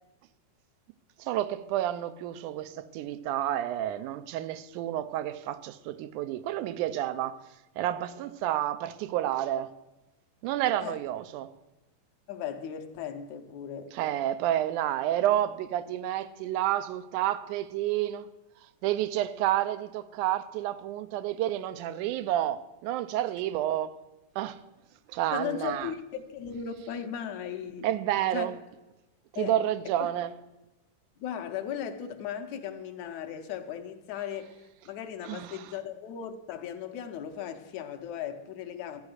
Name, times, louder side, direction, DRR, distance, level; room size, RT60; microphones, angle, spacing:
voice 1, 1.2-7.4 7.8-9.8 10.4-11.5 13.9-18.3 18.8-24.0 24.4-24.6 25.1-25.9 27.8-28.5 29.3-30.3 35.3-35.6, right 12 dB, 90° right, 2.1 m, -30 dB
voice 2, 12.3-13.9 25.3-27.9 28.3-28.5 29.4-29.5 30.0-30.1 31.2-39.0, left 8 dB, 70° left, 2.1 m, -37 dB
13.0 x 9.5 x 6.4 m
omnidirectional pair, 3.5 m